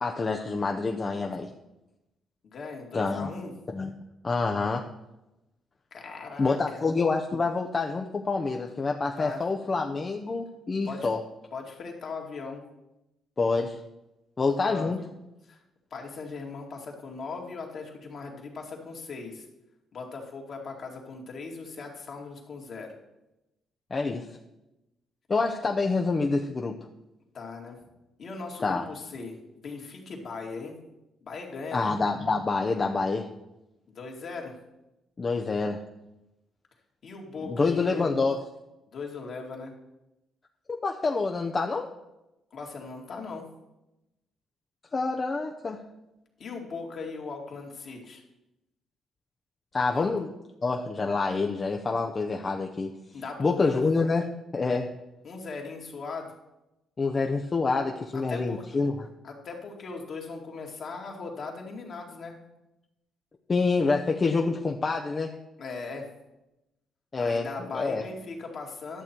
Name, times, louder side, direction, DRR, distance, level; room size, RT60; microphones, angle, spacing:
voice 1, 0.0-1.5 2.9-3.3 3.7-3.9 4.2-4.9 6.4-11.2 13.4-13.8 14.4-15.0 23.9-24.3 25.3-26.7 28.6-28.9 31.7-33.3 35.2-35.8 37.5-38.4 40.8-41.9 44.9-45.8 49.7-50.3 50.6-52.9 53.4-54.3 54.5-54.9 57.0-58.9 63.5-65.3 67.1-67.5 67.7-68.0, left 4 dB, 35° left, 2 dB, 0.8 m, -27 dB
voice 2, 2.4-3.5 5.9-6.9 9.2-9.4 10.9-11.1 11.5-12.6 14.4-14.9 15.5-15.6 15.9-19.4 19.9-22.9 27.3-27.8 28.2-29.3 29.6-30.8 31.2-31.9 33.9-34.5 37.0-38.3 38.9-39.7 42.5-43.5 46.4-48.2 50.0-50.1 53.1-53.8 55.2-56.3 58.1-58.6 59.2-62.3 65.6-66.1 67.2-69.0, left 4 dB, 60° left, 0 dB, 2.2 m, -39 dB
11.0 x 6.7 x 4.5 m, 0.94 s
supercardioid pair, 65°, 0 cm